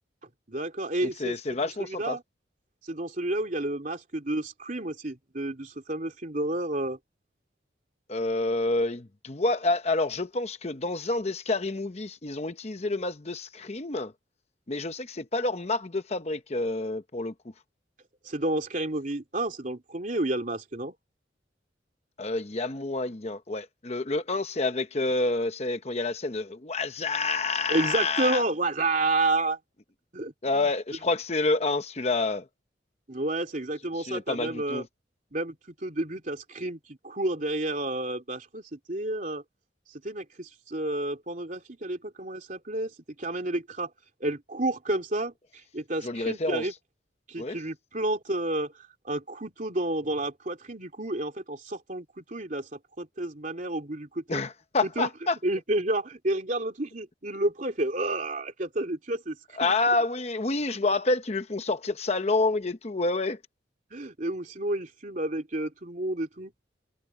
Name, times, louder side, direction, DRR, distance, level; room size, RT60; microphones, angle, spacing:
voice 1, 0.5-1.4 1.6-2.2 2.8-7.0 18.2-20.9 27.7-29.6 30.1-30.7 33.1-34.9 35.3-39.4 39.9-43.9 44.2-46.7 47.3-54.4 54.8-55.1 55.4-59.7 63.9-66.5, right 2 dB, 45° right, 2.9 m, -30 dB
voice 2, 1.0-2.2 8.1-14.1 14.7-17.3 22.2-28.4 30.4-32.5 34.0-34.8 46.0-46.7 47.4-47.6 54.3-55.4 59.6-63.4, left 3 dB, 35° left, 0.8 m, -28 dB
head